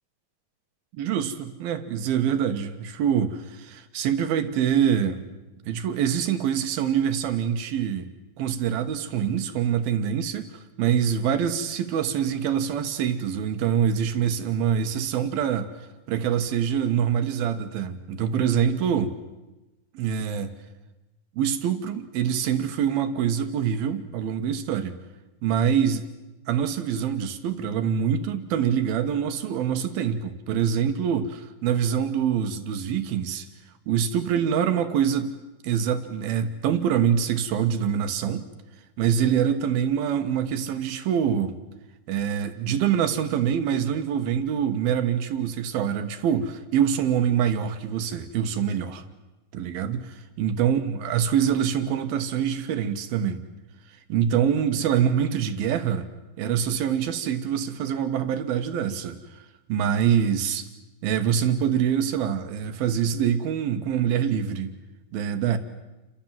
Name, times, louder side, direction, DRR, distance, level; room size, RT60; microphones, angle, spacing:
voice 1, 0.9-5.3 5.7-8.1 8.4-15.7 16.1-19.1 19.9-20.5 21.4-25.0 25.4-26.1 26.5-33.5 33.9-35.4 35.6-38.4 39.0-41.6 42.1-49.0 49.5-50.0 50.4-53.4 54.1-56.1 56.4-59.4 59.7-60.7 61.0-64.7 65.1-65.6, right 8 dB, 85° right, 3.2 m, -25 dB
29.5 x 25.5 x 7.6 m
omnidirectional pair, 4.2 m